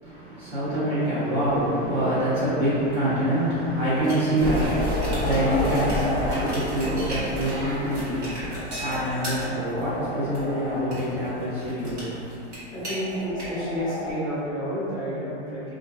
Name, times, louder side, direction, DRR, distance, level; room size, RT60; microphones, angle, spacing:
voice 1, 0.0-12.3, right 1 dB, 40° right, -12 dB, 0.7 m, -26 dB
sound 1, 4.0-14.1, left 1 dB, 70° right, 1.4 m, -30 dB
voice 2, 12.7-15.7, equal, 15° left, -10 dB, 0.5 m, -30 dB
2.5 x 2.1 x 2.4 m, 2.8 s
supercardioid pair, 155°, 35 cm